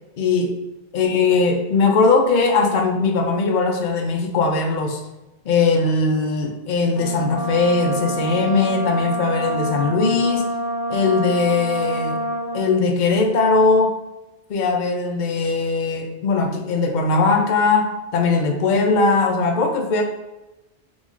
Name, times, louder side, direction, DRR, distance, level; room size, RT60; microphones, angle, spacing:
voice 1, 0.2-0.5 0.9-5.0 5.5-10.5 10.9-12.2 12.5-13.9 14.5-20.0, left 4 dB, 55° left, 2 dB, 0.7 m, -19 dB
Brass instrument, 6.9-12.8, equal, 15° left, 1.5 m, -26 dB
3.8 x 3.0 x 3.6 m, 1.0 s
omnidirectional pair, 1.0 m